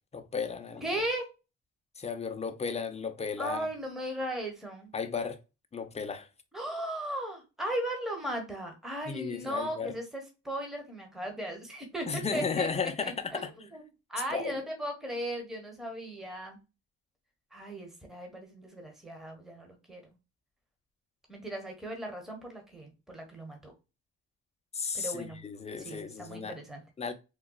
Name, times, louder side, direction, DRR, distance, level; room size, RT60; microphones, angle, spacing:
voice 1, 0.1-0.8 2.0-3.7 4.9-5.4 5.7-6.3 9.1-9.9 12.1-13.5 14.3-14.6 24.7-26.6 27.0-27.1, left 5 dB, 20° left, 0.5 m, -34 dB
voice 2, 0.8-1.3 3.4-4.9 6.5-13.8 14.1-16.6 17.5-20.1 21.3-23.7 24.9-25.4 25.8-26.8, right 1 dB, ahead, 1.1 m, -37 dB
3.7 x 2.3 x 2.2 m
cardioid pair, 90°, 30 cm